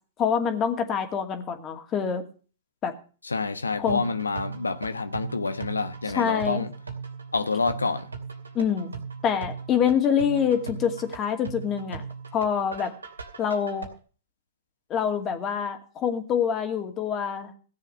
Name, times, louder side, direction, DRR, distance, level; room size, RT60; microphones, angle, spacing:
voice 1, 0.2-2.2 2.8-2.9 3.8-4.1 6.1-6.6 8.5-8.9 9.2-12.0 12.3-12.9 13.4-13.9 14.9-17.5, left 7 dB, 30° left, 2.4 m, -26 dB
voice 2, 3.2-6.7 7.3-8.1, left 4 dB, 90° left, 1.0 m, -28 dB
sound 1, 3.9-13.9, right 5 dB, 90° right, 2.6 m, -38 dB
15.5 x 7.5 x 6.8 m
hypercardioid pair, 110°, 0 cm